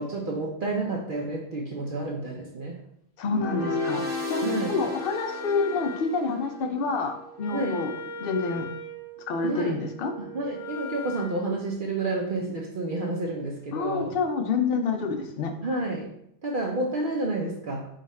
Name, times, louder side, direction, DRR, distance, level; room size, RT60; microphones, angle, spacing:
voice 1, 0.0-2.8 4.4-4.8 7.5-7.8 9.4-9.8 10.2-14.1 15.6-16.1 16.4-17.9, right 2 dB, 55° right, -1 dB, 0.7 m, -30 dB
voice 2, 3.2-7.9 8.2-8.7 9.3-10.1 13.7-15.5, left 4 dB, 60° left, 5 dB, 0.8 m, -28 dB
sound 1, 3.2-6.5, left 2 dB, 10° right, 0.7 m, -32 dB
Wind instrument woodwind instrument, 3.4-11.4, left 1 dB, 85° left, 1.1 m, -41 dB
5.0 x 2.5 x 4.1 m, 0.74 s
omnidirectional pair, 1.1 m